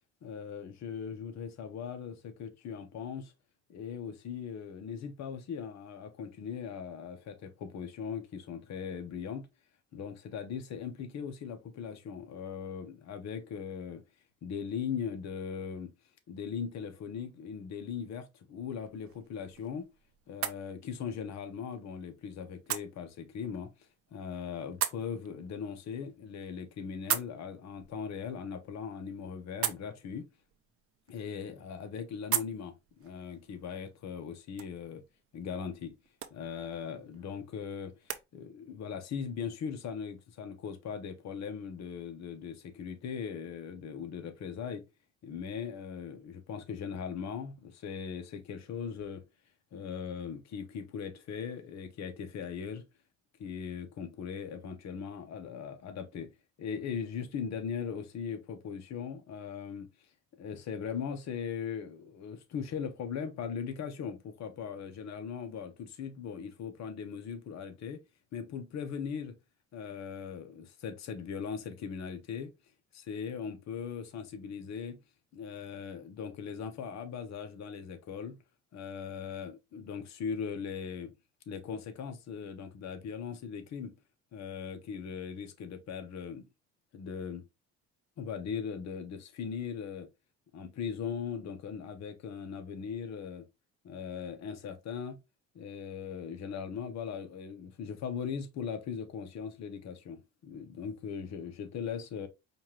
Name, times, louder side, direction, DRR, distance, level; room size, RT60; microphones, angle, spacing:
voice 1, 0.2-3.3 3.7-9.5 9.9-14.0 14.4-15.9 16.3-19.9 20.3-23.7 24.1-30.3 31.1-35.0 35.3-35.9 36.3-44.8 45.2-49.2 49.7-52.8 53.4-59.9 60.4-68.0 68.3-69.4 69.7-72.5 72.9-75.0 75.3-78.4 78.7-81.1 81.5-83.9 84.3-86.4 86.9-87.4 88.2-90.1 90.5-93.5 93.8-95.2 95.5-102.3, left 6 dB, 65° left, 1.0 m, -39 dB
sound 1, 18.8-38.2, right 10 dB, 50° right, 0.7 m, -42 dB
5.1 x 2.5 x 3.0 m
cardioid pair, 95°, 30 cm